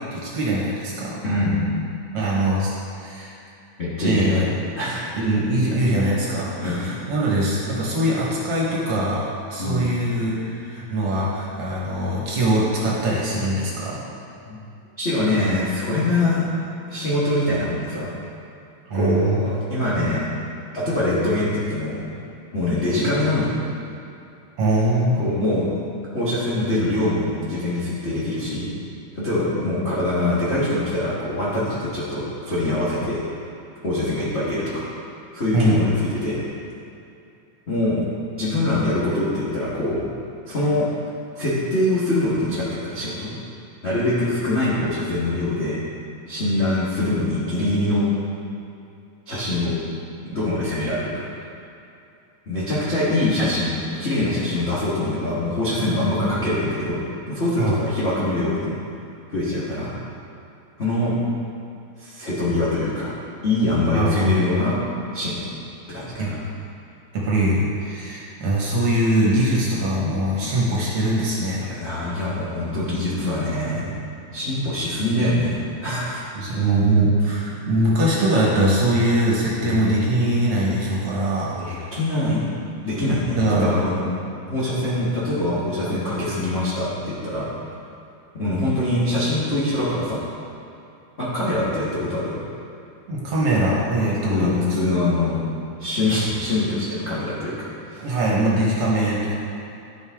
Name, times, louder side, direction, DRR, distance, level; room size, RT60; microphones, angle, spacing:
voice 1, 0.0-1.2 2.1-3.3 4.0-4.5 5.2-14.0 18.9-19.4 24.6-25.2 35.5-35.8 57.6-57.8 63.9-64.3 66.2-66.4 67.1-71.8 76.4-81.9 83.4-83.7 93.1-94.8 98.0-99.4, right 1 dB, 55° right, -5 dB, 1.9 m, -22 dB
voice 2, 1.2-1.7 3.8-4.5 4.8-5.2 6.6-6.8 9.6-9.8 14.5-14.6 15.0-16.4 16.9-18.1 18.9-20.2 20.7-22.0 22.5-23.5 25.1-25.7 26.1-28.7 29.1-33.2 33.8-34.8 35.3-36.4 37.7-38.0 38.4-40.0 40.5-40.8 41.3-43.3 43.8-45.8 46.3-48.1 49.3-49.8 50.2-51.1 52.5-53.7 54.0-58.7 59.3-59.9 60.8-61.1 62.0-63.1 63.4-64.7 65.1-65.5 65.9-66.4 70.4-70.5 71.7-73.9 74.3-76.6 79.6-79.8 81.6-82.4 82.8-84.1 84.5-87.5 88.3-90.2 91.2-92.4 94.3-95.4 95.8-98.1, left 1 dB, 85° left, -10 dB, 0.5 m, -23 dB
12.0 x 5.3 x 3.5 m, 2.6 s
omnidirectional pair, 3.5 m